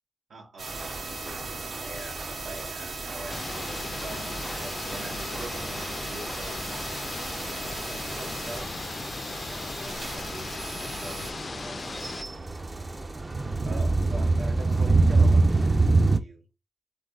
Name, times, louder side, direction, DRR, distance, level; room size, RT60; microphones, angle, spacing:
voice 1, 0.3-6.9 7.5-8.7 9.2-12.4 13.6-15.5 15.9-16.5, right 2 dB, 80° right, 1.5 m, -44 dB
sound 1, 0.6-11.3, right 3 dB, 65° right, 1.0 m, -38 dB
sound 2, 0.7-16.2, right 3 dB, 25° right, 0.4 m, -28 dB
sound 3, 3.3-12.2, left 4 dB, 40° left, 0.3 m, -37 dB
3.7 x 3.4 x 3.9 m
wide cardioid pair, 115°, 0 cm